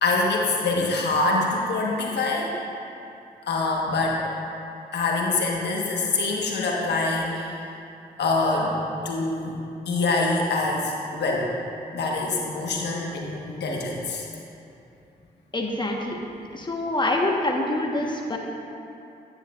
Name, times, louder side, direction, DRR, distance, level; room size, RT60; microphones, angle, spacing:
voice 1, 0.0-2.5 3.5-4.3 4.9-7.6 8.2-9.6 9.8-11.5 11.9-14.2, left 3 dB, 70° left, -2 dB, 1.4 m, -25 dB
voice 2, 15.5-16.2 16.5-18.4, left 1 dB, 25° left, 0 dB, 1.3 m, -25 dB
10.0 x 9.2 x 2.5 m, 2.7 s
supercardioid pair, 55°, 18 cm